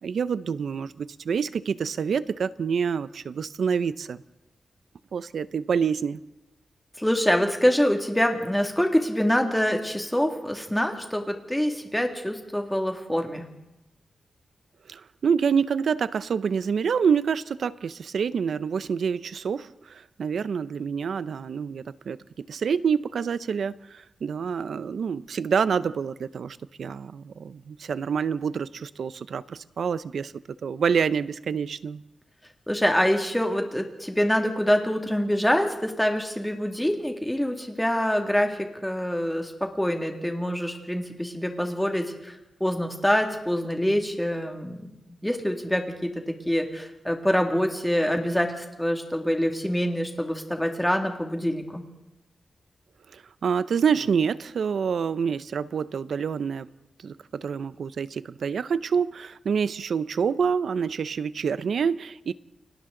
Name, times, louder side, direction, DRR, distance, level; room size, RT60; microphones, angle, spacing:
voice 1, 0.0-4.2 5.1-6.2 14.9-30.3 30.6-32.0 53.1-56.7 57.0-62.3, right 6 dB, 70° right, 16 dB, 0.6 m, -27 dB
voice 2, 7.0-13.5 32.7-42.3 42.6-44.9 45.2-51.8, equal, 5° left, 3 dB, 2.2 m, -25 dB
30.0 x 23.5 x 3.9 m, 0.95 s
wide cardioid pair, 155°, 0 cm